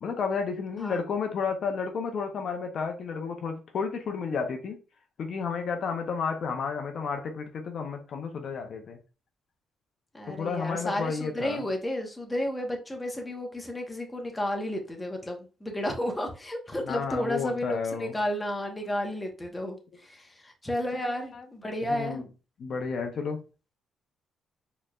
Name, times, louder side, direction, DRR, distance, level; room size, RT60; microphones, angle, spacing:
voice 1, 0.0-4.8 5.2-9.0 10.4-11.6 16.9-18.2 20.9-21.4 21.8-22.2 22.6-23.4, left 5 dB, 60° left, 0.6 m, -32 dB
voice 2, 10.1-22.2, left 1 dB, 15° left, 1.0 m, -32 dB
4.3 x 3.1 x 2.3 m
cardioid pair, 90°, 0 cm